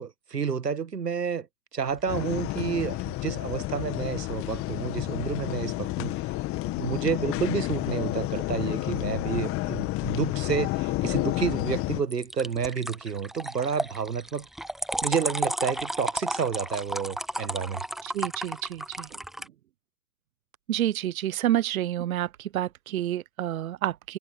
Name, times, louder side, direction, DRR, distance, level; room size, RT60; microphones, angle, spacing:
voice 1, 0.0-1.5 1.7-6.2 6.8-14.5 15.0-17.8, right 6 dB, 85° right, 1.4 m, -30 dB
sound 1, 1.8-2.5 12.1-19.5, right 1 dB, ahead, 0.5 m, -33 dB
sound 2, 2.1-12.0, left 19 dB, 30° left, 2.0 m, -30 dB
voice 2, 18.0-19.1 20.7-24.2, right 12 dB, 60° right, 0.9 m, -29 dB
figure-of-eight pair, 110°, 47 cm